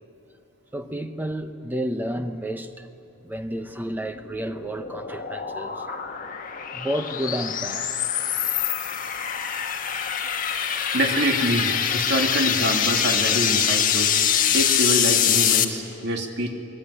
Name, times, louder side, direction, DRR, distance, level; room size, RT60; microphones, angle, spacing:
voice 1, 0.7-2.9 3.2-6.1 6.7-8.0, equal, 10° right, 0.8 m, -31 dB
sound 1, 4.0-15.6, left 9 dB, 40° left, 1.6 m, -24 dB
voice 2, 10.9-14.2 14.5-16.5, right 1 dB, 60° right, 2.5 m, -25 dB
26.0 x 19.5 x 10.0 m
head